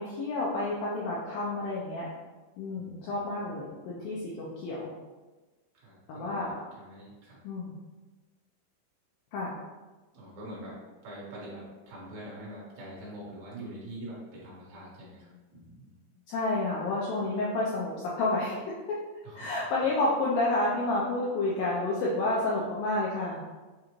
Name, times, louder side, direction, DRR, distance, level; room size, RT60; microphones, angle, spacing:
voice 1, 0.0-2.1 2.6-4.9 6.1-6.5 7.4-7.7 9.3-9.6 16.3-18.7 19.3-23.4, left 2 dB, 90° left, -5 dB, 2.1 m, -30 dB
voice 2, 2.8-3.5 5.8-6.5 6.8-7.4 10.1-16.0 19.2-19.5, right 1 dB, 60° right, -5 dB, 2.0 m, -44 dB
6.4 x 2.4 x 3.0 m, 1.2 s
omnidirectional pair, 4.8 m